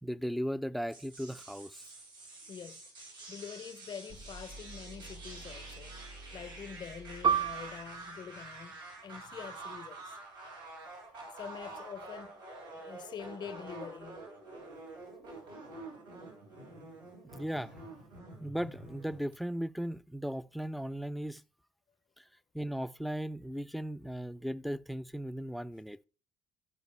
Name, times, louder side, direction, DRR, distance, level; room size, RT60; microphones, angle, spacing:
voice 1, 0.0-1.8 17.3-17.7 18.4-21.4 22.2-22.3 22.5-26.0, equal, ahead, 0.4 m, -37 dB
sound 1, 0.9-19.3, right 2 dB, 90° right, 4.1 m, -48 dB
voice 2, 2.5-6.0 6.3-10.2 11.3-12.4 12.7-14.2, left 7 dB, 45° left, 0.6 m, -46 dB
sound 2, 4.1-8.1, right 2 dB, 75° right, 5.0 m, -51 dB
Piano, 7.2-12.3 12.6-12.8 13.6-13.9, right 7 dB, 50° right, 0.6 m, -36 dB
13.5 x 5.1 x 3.2 m
hypercardioid pair, 60°, 11 cm